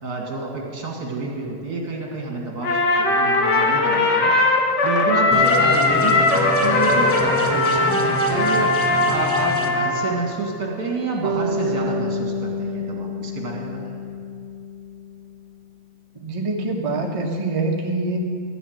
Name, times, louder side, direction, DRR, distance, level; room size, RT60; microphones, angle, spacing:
voice 1, 0.0-4.3 4.8-13.9, right 3 dB, 55° right, -1 dB, 2.7 m, -28 dB
Trumpet, 2.6-10.2, left 3 dB, 65° left, 1.9 m, -19 dB
sound 1, 5.3-9.7, right 1 dB, 20° left, 0.4 m, -28 dB
Bass guitar, 11.2-15.3, left 1 dB, 90° right, 0.6 m, -28 dB
voice 2, 16.1-18.2, right 2 dB, 20° right, 0 dB, 1.0 m, -25 dB
13.0 x 7.0 x 9.2 m, 2.2 s
omnidirectional pair, 2.1 m